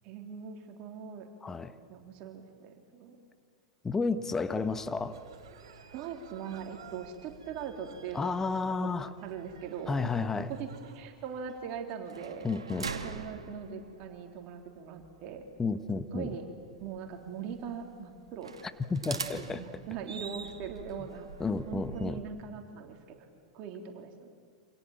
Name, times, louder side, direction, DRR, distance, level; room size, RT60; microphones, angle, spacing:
voice 1, 0.0-1.3 1.9-3.2 5.9-10.1 10.5-15.5 16.1-16.5 16.8-18.5 19.1-21.3 21.7-23.3 23.5-24.3, right 7 dB, 40° right, 4 dB, 3.7 m, -41 dB
voice 2, 1.4-1.7 3.8-5.2 8.1-9.1 9.9-10.5 12.4-12.9 15.6-16.3 18.9-19.6 21.4-22.2, left 4 dB, 15° left, 12 dB, 1.4 m, -31 dB
sound 1, 4.5-22.1, right 5 dB, 70° right, 2.3 m, -46 dB
sound 2, 4.8-12.3, right 7 dB, 55° right, 4.5 m, -56 dB
28.5 x 27.5 x 7.5 m, 2.1 s
figure-of-eight pair, 90°, 3 cm